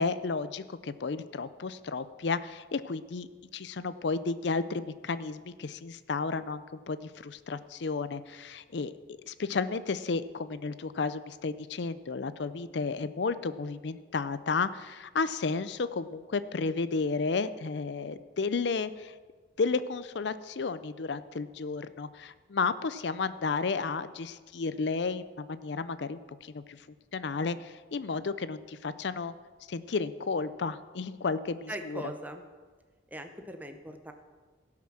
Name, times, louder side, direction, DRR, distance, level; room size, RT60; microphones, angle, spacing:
voice 1, 0.0-19.1 19.6-26.9 27.1-29.3 29.7-32.0, left 4 dB, 65° left, 14 dB, 0.5 m, -32 dB
voice 2, 31.7-32.4 33.1-34.1, right 1 dB, 10° right, 6 dB, 0.7 m, -40 dB
17.0 x 6.0 x 6.1 m, 1.4 s
head